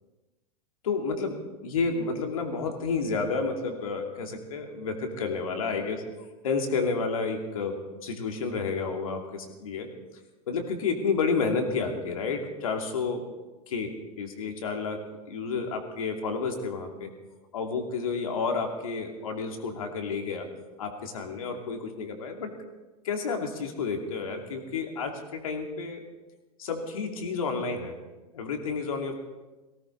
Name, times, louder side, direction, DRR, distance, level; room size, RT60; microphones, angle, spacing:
voice 1, 0.8-9.9 10.5-13.3 13.7-17.1 17.5-20.5 20.8-22.5 23.0-26.0 26.6-28.0 28.3-29.1, left 4 dB, 65° left, 3 dB, 2.7 m, -30 dB
18.0 x 18.0 x 4.0 m, 1.1 s
figure-of-eight pair, 95°, 19 cm